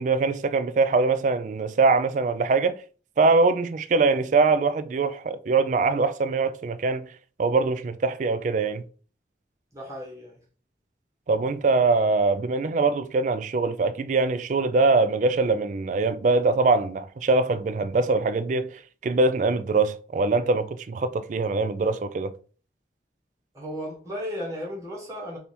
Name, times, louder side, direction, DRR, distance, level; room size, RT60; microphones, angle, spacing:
voice 1, 0.0-2.8 3.2-7.1 7.4-8.8 11.3-18.7 19.0-22.3, right 3 dB, 45° right, 0.3 m, -23 dB
voice 2, 9.7-10.4 23.5-25.4, equal, 15° right, 1.4 m, -35 dB
3.4 x 2.8 x 4.3 m
head